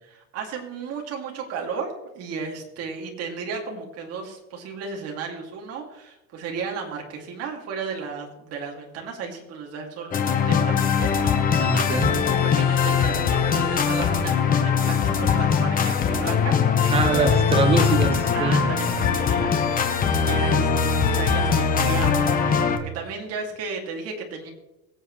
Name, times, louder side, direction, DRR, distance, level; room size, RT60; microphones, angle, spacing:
voice 1, 0.1-17.3 18.3-24.5, right 5 dB, 40° right, 1 dB, 2.7 m, -34 dB
sound 1, 10.1-22.8, left 6 dB, 20° left, 1.1 m, -21 dB
voice 2, 11.6-12.1 16.9-18.7, right 4 dB, 15° right, 8 dB, 1.0 m, -23 dB
23.0 x 8.0 x 3.3 m, 0.98 s
supercardioid pair, 155°, 39 cm